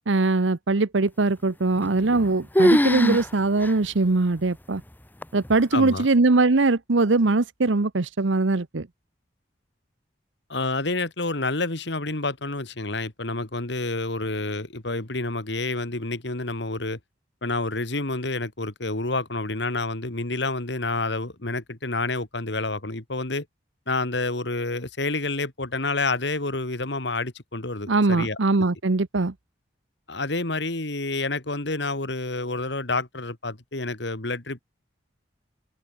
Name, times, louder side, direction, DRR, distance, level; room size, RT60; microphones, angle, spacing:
voice 1, 0.1-4.8 5.3-8.9 27.9-29.3, right 3 dB, 80° right, 0.9 m, -21 dB
sound 1, 1.8-2.3 2.5-3.3 3.6-3.7 4.4-4.5 5.2-5.6, equal, 10° left, 1.2 m, -21 dB
voice 2, 5.7-6.1 10.5-17.0 17.4-23.5 23.9-28.4 30.1-34.6, left 2 dB, 65° left, 2.3 m, -28 dB
head